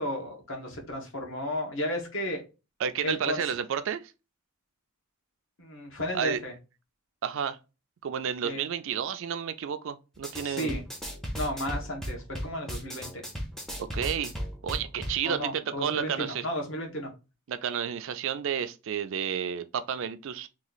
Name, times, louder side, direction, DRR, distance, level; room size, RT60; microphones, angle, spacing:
voice 1, 0.0-2.4 3.0-3.4 5.6-6.5 8.4-8.6 10.4-10.8 11.3-13.1 15.2-17.1, equal, 60° left, 1.1 m, -33 dB
voice 2, 2.8-4.1 6.1-6.4 7.2-7.6 8.0-10.8 13.8-14.3 14.6-16.4 17.5-20.5, right 8 dB, 60° right, 0.3 m, -31 dB
sound 1, 10.2-15.2, equal, ahead, 0.5 m, -36 dB
3.0 x 2.4 x 3.8 m
head